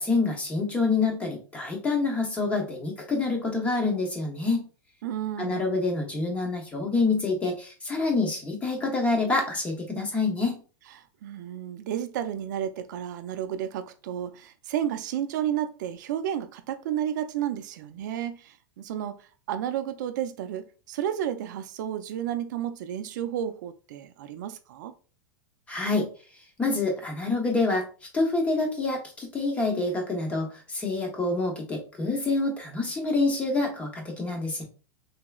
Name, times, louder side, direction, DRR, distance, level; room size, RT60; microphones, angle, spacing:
voice 1, 0.0-4.6 5.4-10.6 25.7-26.1 26.6-27.8 28.1-34.6, left 3 dB, 10° left, 0.8 m, -27 dB
voice 2, 5.0-5.7 11.0-24.9, right 10 dB, 60° right, 0.4 m, -32 dB
3.3 x 3.0 x 2.3 m
supercardioid pair, 155°, 11 cm